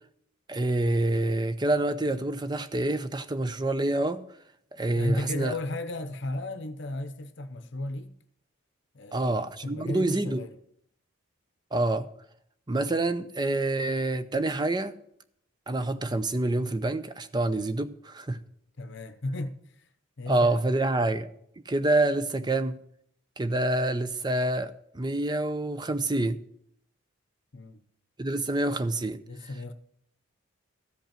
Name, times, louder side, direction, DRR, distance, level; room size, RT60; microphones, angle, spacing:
voice 1, 0.5-4.2 4.7-5.5 9.1-10.4 11.7-12.1 12.7-14.9 15.7-18.4 20.3-21.3 21.7-22.8 23.4-26.4 28.2-29.2, right 2 dB, 20° right, 0.6 m, -27 dB
voice 2, 4.9-8.1 8.9-9.4 9.6-10.6 18.8-19.9 20.2-20.6 27.5-27.8 29.3-29.7, left 2 dB, 55° left, 0.7 m, -34 dB
14.0 x 5.4 x 8.9 m
head